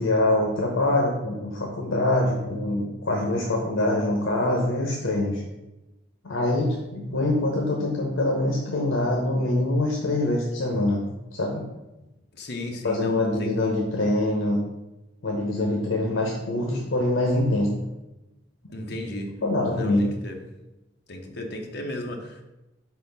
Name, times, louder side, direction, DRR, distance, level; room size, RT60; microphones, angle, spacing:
voice 1, 0.0-5.4 6.2-11.0 11.3-11.7 12.8-14.6 15.2-17.7 18.7-18.8 19.4-20.1, left 1 dB, 80° left, -1 dB, 1.0 m, -24 dB
voice 2, 12.4-13.5 18.7-19.3 19.7-20.4 21.1-22.5, left 1 dB, 55° left, 2 dB, 0.8 m, -35 dB
4.4 x 4.2 x 5.4 m, 0.99 s
head